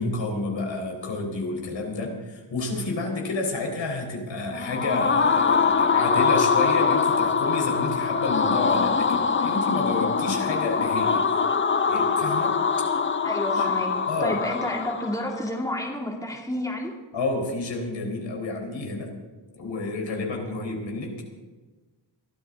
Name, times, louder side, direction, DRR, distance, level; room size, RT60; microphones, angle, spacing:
voice 1, 0.0-11.2 11.9-12.6 13.6-13.7 14.1-14.4 17.1-19.1 19.5-21.1, left 2 dB, 75° left, 1 dB, 4.2 m, -30 dB
sound 1, 4.5-15.4, left 5 dB, 25° left, 0.7 m, -23 dB
voice 2, 13.2-16.9, left 1 dB, 10° left, -1 dB, 2.4 m, -30 dB
22.5 x 13.0 x 3.8 m, 1.3 s
cardioid pair, 95°, 45 cm